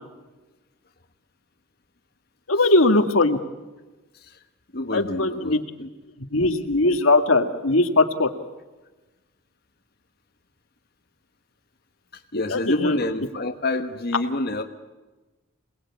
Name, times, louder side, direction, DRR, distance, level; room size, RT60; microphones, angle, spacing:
voice 1, 2.5-3.4 4.9-5.6 6.3-8.3 12.5-13.0, left 2 dB, 85° left, 6 dB, 2.0 m, -20 dB
voice 2, 4.7-5.9 12.1-14.6, left 2 dB, 50° left, 4 dB, 1.3 m, -28 dB
27.5 x 19.5 x 8.6 m, 1.2 s
head